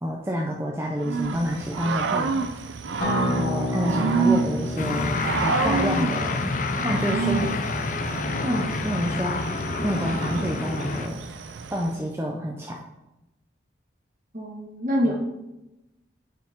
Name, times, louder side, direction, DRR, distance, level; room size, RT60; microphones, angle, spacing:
voice 1, 0.0-2.4 3.2-7.5 8.4-11.2 11.7-12.8, equal, 15° right, -1 dB, 0.5 m, -28 dB
Growling / Cricket, 1.0-12.0, right 4 dB, 80° right, 0.5 m, -29 dB
Acoustic guitar, 3.0-8.2, left 1 dB, 60° left, 2.7 m, -31 dB
sound 1, 4.8-11.1, left 3 dB, 40° left, 0.4 m, -28 dB
voice 2, 14.3-15.2, equal, 45° right, 0 dB, 1.5 m, -26 dB
9.5 x 4.6 x 3.6 m, 0.96 s
head